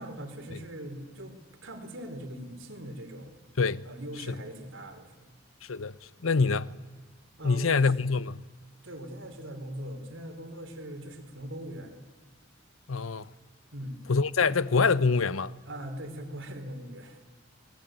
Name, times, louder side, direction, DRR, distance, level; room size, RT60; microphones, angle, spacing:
voice 1, 0.0-1.3 1.6-3.4 3.8-5.3 6.6-6.7 7.4-7.9 8.8-12.0 13.7-14.0 15.7-17.2, right 1 dB, 70° right, 4.2 m, -41 dB
voice 2, 6.2-6.7 7.4-8.4 12.9-13.3 14.1-15.5, left 4 dB, 90° left, 0.8 m, -25 dB
28.0 x 21.0 x 9.2 m
head